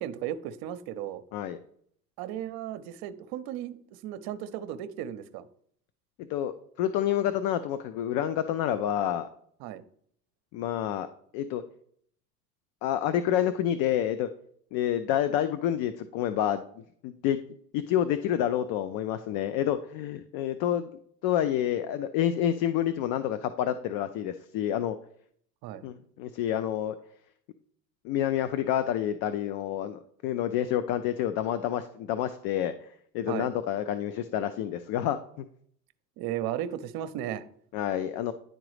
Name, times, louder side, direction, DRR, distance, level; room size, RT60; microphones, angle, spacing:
voice 1, 0.0-1.2 2.2-5.5 9.6-9.8 25.6-25.8 33.3-33.5 36.2-37.5, right 11 dB, 50° right, 12 dB, 0.7 m, -35 dB
voice 2, 6.2-9.3 10.5-11.1 11.3-11.6 12.8-14.3 14.7-17.4 17.7-20.9 21.2-25.0 25.8-27.0 28.0-32.7 33.1-35.4 37.7-38.3, left 10 dB, 50° left, 12 dB, 0.6 m, -28 dB
10.5 x 3.8 x 3.2 m, 0.63 s
hypercardioid pair, 85°, 49 cm